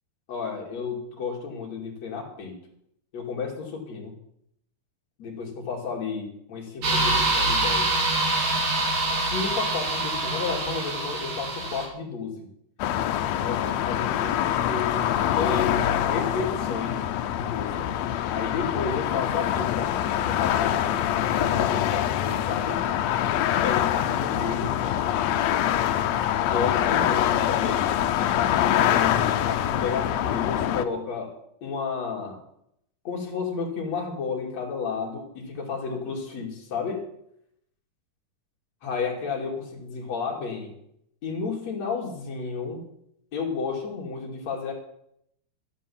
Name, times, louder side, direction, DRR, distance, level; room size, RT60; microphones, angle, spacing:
voice 1, 0.3-2.5 3.1-4.1 5.2-7.9 9.3-12.5 13.4-17.1 17.3-17.9 18.3-22.8 23.5-25.2 26.4-27.9 28.3-31.3 31.6-32.4 33.1-37.0 38.8-40.7 41.2-42.8 43.3-44.7, left 5 dB, 55° left, 0 dB, 3.7 m, -32 dB
sound 1, 6.8-11.9, right 2 dB, 70° right, 4.2 m, -25 dB
sound 2, 12.8-30.8, left 11 dB, 75° left, 1.6 m, -25 dB
12.5 x 10.5 x 7.1 m, 0.74 s
omnidirectional pair, 3.9 m